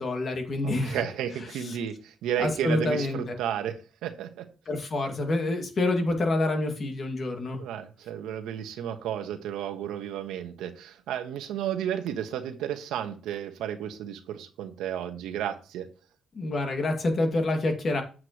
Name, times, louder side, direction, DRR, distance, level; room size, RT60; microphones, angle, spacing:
voice 1, 0.0-1.0 1.6-1.8 2.4-3.2 4.7-7.6 16.3-18.0, left 2 dB, 45° left, 4 dB, 2.2 m, -27 dB
voice 2, 0.6-4.4 7.6-15.9, right 10 dB, 90° right, 7 dB, 1.2 m, -33 dB
8.1 x 7.6 x 3.0 m, 0.35 s
cardioid pair, 90°, 0 cm